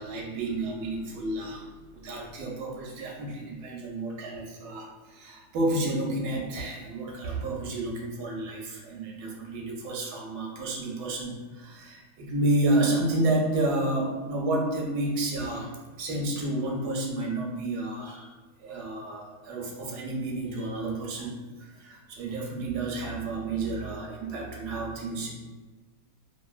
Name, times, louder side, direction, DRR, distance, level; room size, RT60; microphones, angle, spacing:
voice 1, 0.0-1.7 1.9-15.7 16.0-18.3 18.6-25.3, right 2 dB, 90° right, -1 dB, 1.2 m, -30 dB
2.8 x 2.5 x 2.3 m, 1.3 s
omnidirectional pair, 1.7 m